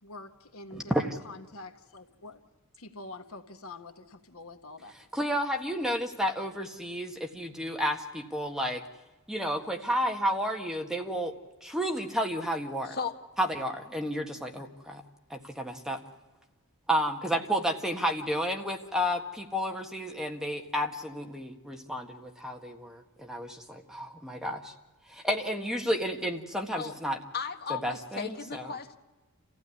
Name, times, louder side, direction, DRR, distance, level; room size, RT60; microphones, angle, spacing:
voice 1, 0.0-0.9 1.2-2.4 2.8-4.9, left 2 dB, 70° left, 1.6 m, -46 dB
voice 2, 0.7-1.2 5.1-8.8 9.3-11.3 11.6-13.0 13.4-15.0 15.3-16.0 16.9-24.7 25.1-27.2 27.7-28.8, equal, ahead, 1.6 m, -31 dB
voice 3, 27.3-29.0, left 6 dB, 45° left, 1.5 m, -35 dB
28.5 x 15.5 x 9.8 m
head